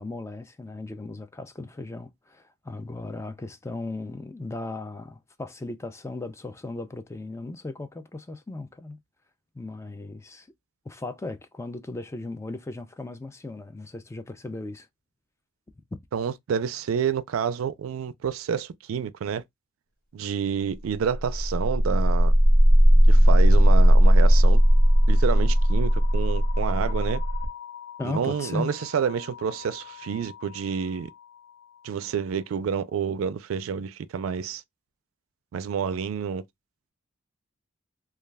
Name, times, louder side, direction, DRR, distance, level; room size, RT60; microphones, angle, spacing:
voice 1, 0.0-9.0 9.6-10.5 10.9-14.9 28.0-28.7, left 2 dB, 15° left, 0.3 m, -36 dB
voice 2, 16.1-19.4 20.1-22.3 23.1-24.6 25.1-27.2 28.0-31.1 31.8-34.6 35.5-36.4, right 7 dB, 75° right, 0.3 m, -29 dB
sound 1, 21.0-30.8, equal, 50° left, 0.8 m, -19 dB
2.3 x 2.2 x 3.2 m
head